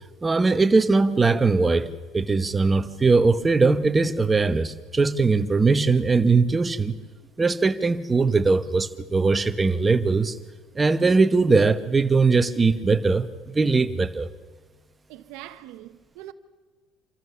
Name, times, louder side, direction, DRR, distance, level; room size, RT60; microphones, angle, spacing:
voice 1, 0.2-1.9 2.1-7.0 7.4-10.4 10.7-14.3, right 4 dB, 20° right, 1.1 m, -20 dB
voice 2, 15.1-16.3, right 14 dB, 80° right, 1.0 m, -42 dB
26.0 x 14.0 x 7.1 m
cardioid pair, 115°, 0 cm